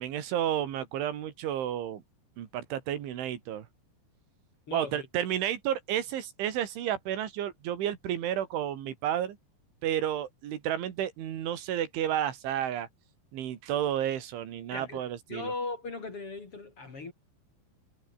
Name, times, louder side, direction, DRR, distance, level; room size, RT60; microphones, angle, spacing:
voice 1, 0.0-2.0 2.4-3.7 4.7-9.4 9.8-12.9 13.3-15.5, right 10 dB, 90° right, 4.9 m, -31 dB
voice 2, 4.7-5.1 14.7-17.1, left 3 dB, 35° left, 3.5 m, -38 dB
omnidirectional pair, 5.3 m